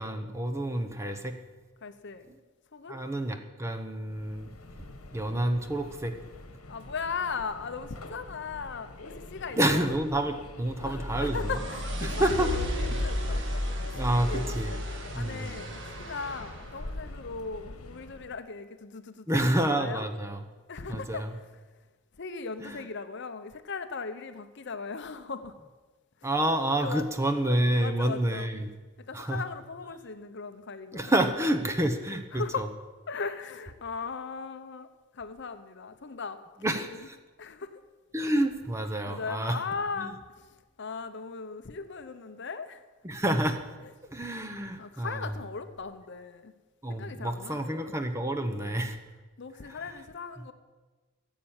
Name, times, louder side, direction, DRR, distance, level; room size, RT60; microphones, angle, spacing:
voice 1, 0.0-1.3 2.9-4.5 5.1-6.1 9.6-11.4 12.0-12.5 13.3-13.4 13.9-14.8 15.1-15.6 19.3-20.4 20.9-21.3 22.6-22.8 26.2-28.7 29.1-29.4 30.9-32.4 36.6-37.2 38.1-39.6 43.0-43.6 44.1-45.2 46.8-49.0, right 1 dB, 10° right, 6 dB, 0.8 m, -28 dB
voice 2, 1.8-2.3 2.7-3.0 6.7-9.9 10.8-13.4 13.8-14.5 15.1-20.1 20.7-21.6 22.2-25.5 26.2-26.3 26.8-27.0 27.8-28.5 29.1-31.2 32.3-32.6 33.1-34.9 35.1-36.4 36.7-37.0 37.4-37.7 39.0-40.5 40.8-42.8 43.8-43.9 44.8-46.5 46.9-47.9 48.3-48.8 49.4-50.5, left 4 dB, 50° left, 9 dB, 0.7 m, -38 dB
Subway metro underground, 4.0-18.4, left 2 dB, 75° left, 1.3 m, -45 dB
sound 1, 10.7-16.7, left 1 dB, 55° right, 1.6 m, -33 dB
14.5 x 7.4 x 8.8 m, 1.3 s
head